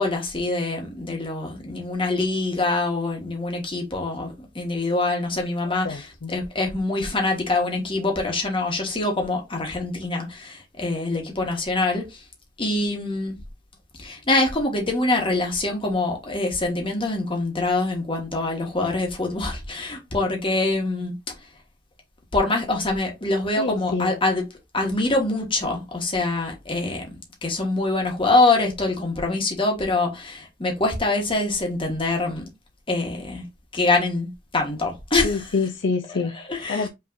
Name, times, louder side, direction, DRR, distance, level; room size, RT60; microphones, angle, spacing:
voice 1, 0.0-12.2 12.6-13.4 14.0-21.1 22.3-24.4 24.7-32.5 32.9-33.4 33.7-35.5 36.5-36.9, left 2 dB, 25° left, 1.3 m, -24 dB
voice 2, 5.8-6.4 23.6-24.2 35.2-36.9, left 4 dB, 65° left, 0.5 m, -27 dB
5.6 x 3.2 x 2.6 m
head